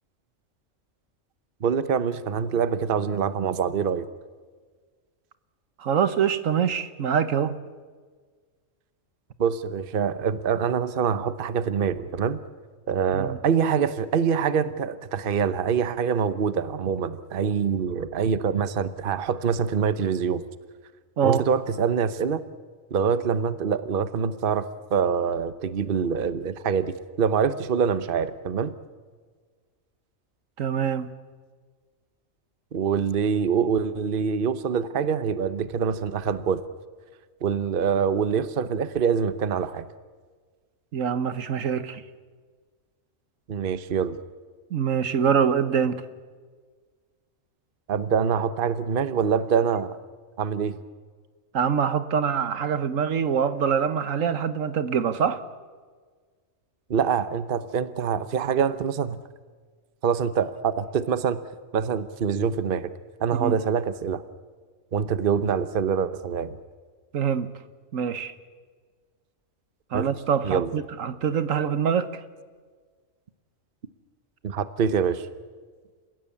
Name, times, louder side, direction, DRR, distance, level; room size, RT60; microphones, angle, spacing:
voice 1, 1.6-4.1 9.4-12.4 12.9-20.4 21.2-22.4 22.9-28.7 32.7-36.6 37.4-39.9 43.5-44.2 47.9-50.0 50.4-50.8 56.9-59.2 60.0-61.4 61.7-62.9 63.2-64.2 64.9-66.6 69.9-70.1 70.4-70.7 74.4-75.3, right 7 dB, 45° right, 13 dB, 1.0 m, -25 dB
voice 2, 5.8-7.6 13.1-13.4 21.2-21.4 30.6-31.1 40.9-42.0 44.7-46.0 51.5-55.4 63.4-63.5 67.1-67.5 67.9-68.3 69.9-72.1, right 7 dB, 80° right, 13 dB, 1.4 m, -24 dB
28.0 x 16.5 x 8.5 m, 1.5 s
omnidirectional pair, 1.4 m